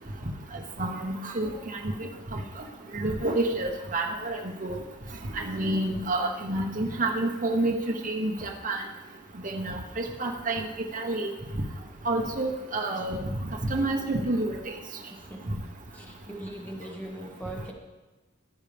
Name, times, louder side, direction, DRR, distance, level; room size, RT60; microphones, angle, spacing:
voice 1, 0.8-1.8 2.9-4.8 5.3-7.7 8.0-8.8 9.4-10.6 10.9-11.3 12.0-13.2 13.7-14.6, right 2 dB, 40° right, -1 dB, 1.0 m, -29 dB
voice 2, 15.1-15.6 15.9-17.7, right 1 dB, 10° left, -1 dB, 1.5 m, -40 dB
15.0 x 9.7 x 3.5 m, 1.2 s
head